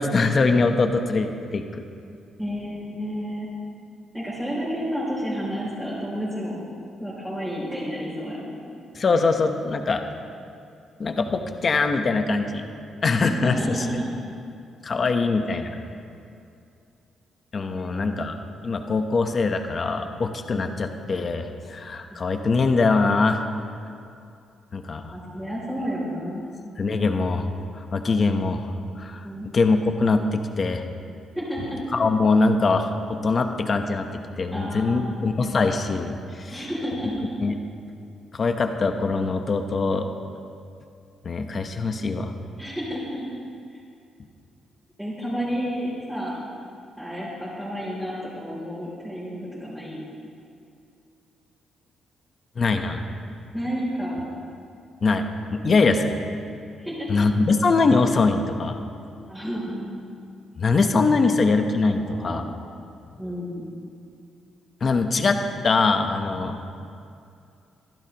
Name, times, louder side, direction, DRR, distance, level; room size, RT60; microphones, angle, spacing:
voice 1, 0.0-1.8 8.9-10.0 11.0-12.7 13.0-13.6 14.8-15.8 17.5-18.3 18.6-23.4 24.7-25.1 26.8-27.5 27.7-28.7 29.0-29.3 29.5-30.8 31.9-34.1 34.4-36.6 37.4-37.5 38.3-40.1 41.2-42.3 52.6-53.0 55.0-55.3 55.5-56.2 57.1-58.8 60.6-62.4 64.8-66.6, left 3 dB, 35° left, 6 dB, 0.9 m, -22 dB
voice 2, 2.4-3.5 4.1-6.6 7.0-8.5 13.3-14.1 15.0-15.1 17.7-18.2 20.5-20.6 25.1-26.4 29.2-29.5 31.3-31.8 34.5-35.1 36.5-37.3 42.6-43.2 43.7-43.8 45.0-46.4 47.0-50.0 53.5-54.2 55.9-56.0 56.8-57.2 59.2-60.0 61.2-61.4 62.0-62.4 63.2-63.6, equal, 5° right, -8 dB, 3.2 m, -31 dB
22.5 x 15.0 x 3.0 m, 2.5 s
cardioid pair, 155°, 0 cm